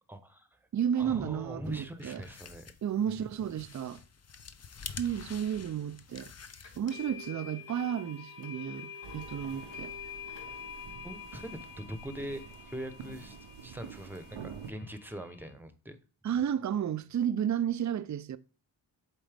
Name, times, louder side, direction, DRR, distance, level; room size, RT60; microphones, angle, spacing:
voice 1, 0.1-0.5 1.0-2.7 3.1-3.2 11.0-13.4 13.6-16.0, equal, 5° right, 0.9 m, -42 dB
voice 2, 0.7-2.2 2.8-4.0 5.0-6.3 6.8-9.9 16.2-18.4, right 9 dB, 40° right, 0.5 m, -32 dB
sound 1, 1.7-7.3, left 6 dB, 35° left, 0.6 m, -48 dB
sound 2, 6.6-15.5, left 7 dB, 65° left, 1.7 m, -47 dB
sound 3, 9.0-14.7, right 7 dB, 90° right, 0.8 m, -48 dB
7.4 x 3.9 x 3.4 m
cardioid pair, 55°, 47 cm